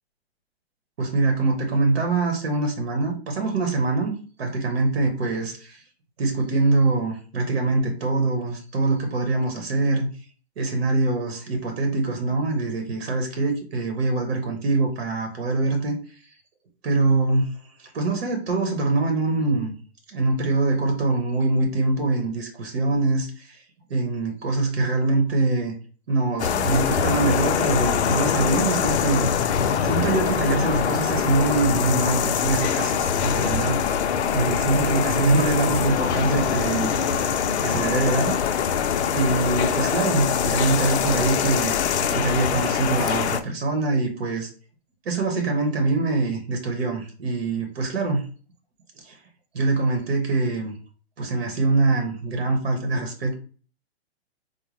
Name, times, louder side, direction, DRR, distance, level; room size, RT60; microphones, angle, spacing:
voice 1, 1.0-5.8 6.2-10.1 10.6-16.0 16.8-17.5 17.8-19.7 20.1-23.6 23.9-25.7 26.1-29.3 29.8-33.8 34.3-37.0 37.6-38.4 39.1-41.7 42.1-44.5 45.0-48.2 49.0-49.2 49.5-50.7 51.2-53.4, right 3 dB, 65° right, 4 dB, 1.0 m, -24 dB
sound 1, 26.4-43.4, left 7 dB, 85° left, 0.5 m, -23 dB
sound 2, 31.7-39.0, left 1 dB, 10° left, 0.5 m, -40 dB
3.9 x 2.2 x 3.1 m, 0.39 s
hypercardioid pair, 155°, 32 cm